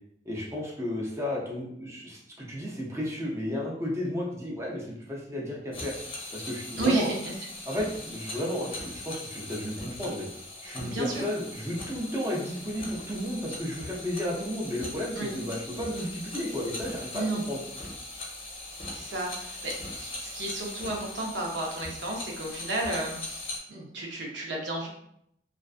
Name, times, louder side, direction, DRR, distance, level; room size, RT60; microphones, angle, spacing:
voice 1, 0.3-5.9 6.3-7.1 7.7-10.3 10.6-17.6, left 1 dB, 15° right, -4 dB, 0.5 m, -33 dB
sound 1, 5.7-23.6, left 2 dB, 30° left, 0.6 m, -40 dB
voice 2, 6.8-7.5 10.8-11.3 15.2-15.3 17.1-17.5 18.9-24.9, right 2 dB, 80° right, -1 dB, 0.6 m, -32 dB
2.4 x 2.4 x 2.4 m, 0.72 s
head